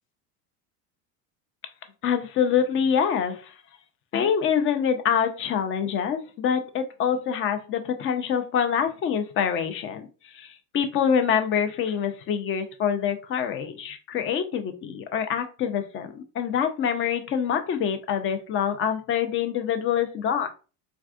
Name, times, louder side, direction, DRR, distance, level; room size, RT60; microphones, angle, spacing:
voice 1, 2.0-3.5 4.1-20.5, left 8 dB, 30° left, 8 dB, 0.4 m, -25 dB
3.4 x 2.3 x 2.3 m, 0.33 s
supercardioid pair, 105°, 48 cm